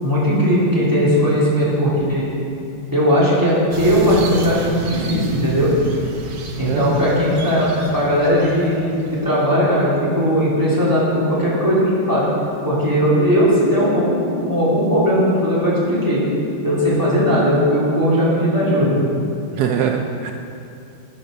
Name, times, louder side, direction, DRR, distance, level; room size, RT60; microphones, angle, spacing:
voice 1, 0.0-2.3 2.9-5.7 6.6-7.7 7.9-12.2 12.6-16.2 16.6-19.0, equal, 10° right, -9 dB, 3.2 m, -18 dB
sound 1, 3.7-9.5, right 2 dB, 60° right, 1.7 m, -32 dB
voice 2, 6.6-7.0 19.5-20.3, right 8 dB, 75° right, 4 dB, 0.9 m, -22 dB
10.0 x 8.6 x 6.6 m, 2.7 s
omnidirectional pair, 2.2 m